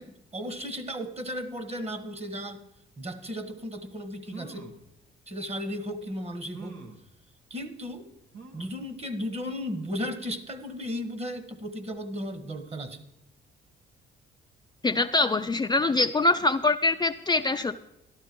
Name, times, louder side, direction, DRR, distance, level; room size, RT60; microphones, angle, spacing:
voice 1, 0.0-2.6 3.0-4.7 5.3-6.8 7.5-8.1 8.5-13.0, equal, 30° right, 11 dB, 1.4 m, -35 dB
sound 1, 3.8-3.9 4.3-4.8 5.6-5.7 6.5-7.0 8.3-8.8 9.3-9.4 9.7-9.8, right 4 dB, 90° right, 1.5 m, -45 dB
voice 2, 14.8-17.8, left 2 dB, 20° left, 6 dB, 0.4 m, -24 dB
13.0 x 12.0 x 4.5 m, 0.85 s
cardioid pair, 90°, 20 cm